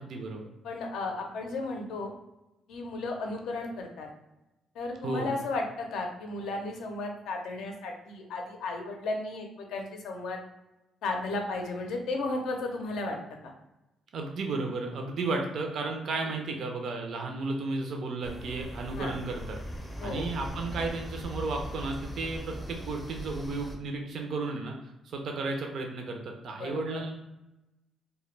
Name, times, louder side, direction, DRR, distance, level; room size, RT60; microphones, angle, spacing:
voice 1, 0.0-0.5 5.0-5.3 14.1-19.6 20.0-24.7 25.0-27.2, right 3 dB, 65° right, 2 dB, 0.4 m, -33 dB
voice 2, 0.6-2.1 2.7-4.1 4.7-10.4 11.0-13.2 16.2-16.3 19.0-19.1 20.0-20.3 26.6-27.0, left 2 dB, 80° left, 2 dB, 0.5 m, -34 dB
sound 1, 18.2-23.8, equal, 10° left, 0.5 m, -40 dB
2.1 x 2.1 x 3.1 m, 0.95 s
cardioid pair, 90°, 0 cm